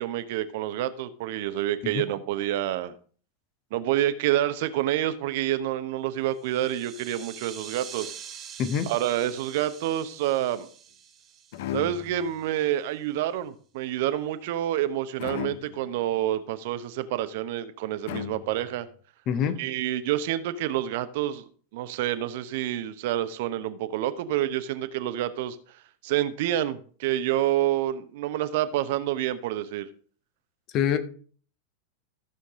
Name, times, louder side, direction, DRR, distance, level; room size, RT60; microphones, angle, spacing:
voice 1, 0.0-2.9 3.7-8.1 8.9-10.7 11.7-18.9 19.6-25.6 26.0-29.9, right 12 dB, 50° right, 0.8 m, -28 dB
sound 1, 6.3-12.4, right 8 dB, 30° right, 1.2 m, -45 dB
voice 2, 8.6-8.9 19.3-19.6 30.7-31.0, left 8 dB, 35° left, 1.2 m, -25 dB
sound 2, 11.5-12.4 15.2-15.9 18.1-18.8, left 13 dB, 50° left, 0.6 m, -36 dB
14.5 x 7.0 x 3.6 m
figure-of-eight pair, 90°, 0 cm